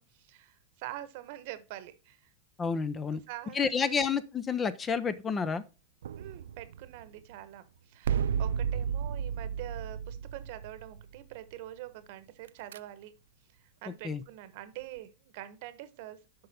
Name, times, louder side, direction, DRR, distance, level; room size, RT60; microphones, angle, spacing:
voice 1, 0.0-2.3 3.1-3.9 6.2-13.1 13.8-16.2, right 14 dB, 60° right, 1.1 m, -45 dB
voice 2, 2.6-3.2 3.5-5.6 14.0-14.2, left 5 dB, 20° left, 0.6 m, -29 dB
sound 1, 6.0-7.3 8.0-11.4 12.5-12.8, right 7 dB, 85° right, 0.3 m, -33 dB
7.7 x 5.3 x 4.2 m
hypercardioid pair, 120°, 0 cm